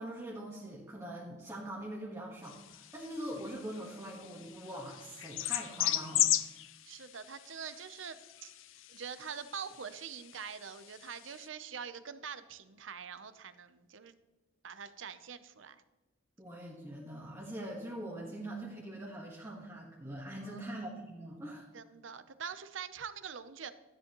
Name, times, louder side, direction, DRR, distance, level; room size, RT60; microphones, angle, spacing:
voice 1, 0.0-6.3 16.4-21.7, right 1 dB, 15° right, -4 dB, 1.4 m, -43 dB
sound 1, 2.4-11.5, left 13 dB, 80° left, 0.5 m, -37 dB
voice 2, 6.8-8.5 8.9-14.2 14.6-15.8 20.4-20.6 20.9-21.0 21.7-23.7, right 7 dB, 75° right, 12 dB, 0.7 m, -44 dB
13.0 x 10.0 x 3.0 m, 1.1 s
head